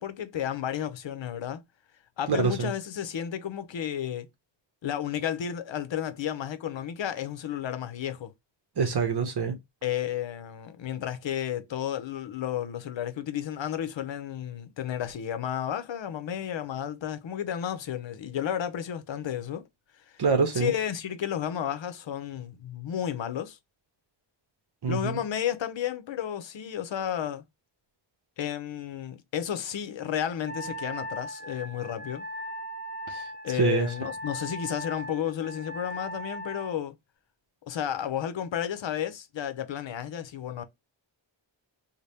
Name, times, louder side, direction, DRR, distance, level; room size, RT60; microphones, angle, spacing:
voice 1, 0.0-1.6 2.2-4.3 4.8-8.3 9.8-19.7 20.1-20.2 20.5-23.6 24.9-27.4 28.4-32.2 33.4-37.0 37.7-40.6, left 10 dB, 75° left, 0.7 m, -32 dB
voice 2, 2.3-2.7 8.8-9.6 20.2-20.7 24.8-25.2 33.1-33.3 33.6-33.9, right 5 dB, 60° right, 0.8 m, -25 dB
Wind instrument woodwind instrument, 30.5-36.8, equal, 20° left, 0.5 m, -38 dB
3.3 x 2.2 x 4.0 m
wide cardioid pair, 105°, 46 cm